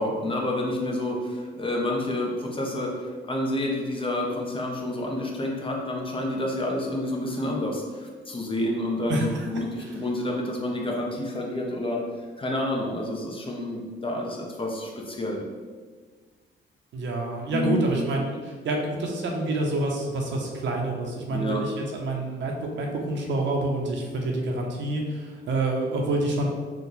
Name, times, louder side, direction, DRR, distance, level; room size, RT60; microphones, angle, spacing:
voice 1, 0.0-12.0 12.4-15.4 17.5-17.8 21.3-21.6, left 1 dB, 25° left, -1 dB, 0.9 m, -29 dB
voice 2, 9.1-9.5 9.8-9.9 16.9-26.5, right 2 dB, 65° right, 0 dB, 0.8 m, -27 dB
4.6 x 2.4 x 4.0 m, 1.5 s
cardioid pair, 90°, 20 cm